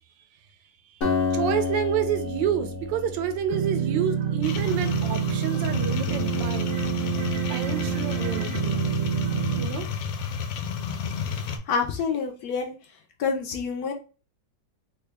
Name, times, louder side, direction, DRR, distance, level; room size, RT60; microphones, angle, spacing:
Acoustic guitar, 1.0-4.6, left 4 dB, 45° left, 0.9 m, -30 dB
voice 1, 1.3-6.7 7.5-8.8 9.6-9.9, right 9 dB, 85° right, 1.3 m, -29 dB
sound 1, 3.5-9.7, right 9 dB, 65° right, 0.8 m, -27 dB
sound 2, 4.4-11.6, left 7 dB, 90° left, 1.3 m, -31 dB
voice 2, 11.3-12.7 13.2-13.9, left 5 dB, 70° left, 1.0 m, -28 dB
3.6 x 2.3 x 3.3 m
omnidirectional pair, 1.9 m